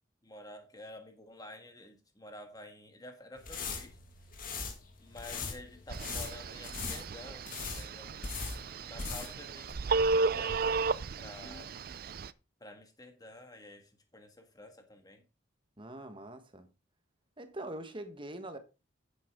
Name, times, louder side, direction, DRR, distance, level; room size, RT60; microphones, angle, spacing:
voice 1, 0.2-4.0 5.0-7.5 7.7-8.2 8.5-10.9 11.2-11.7 12.6-15.2, left 2 dB, 20° left, 1.8 m, -50 dB
sound 1, 3.3-9.4 9.7-9.8, left 4 dB, 45° left, 1.9 m, -40 dB
Telephone, 5.9-12.3, right 4 dB, 50° right, 0.4 m, -34 dB
voice 2, 15.8-16.7 17.4-18.6, right 1 dB, 25° right, 1.2 m, -43 dB
9.7 x 8.0 x 3.6 m
head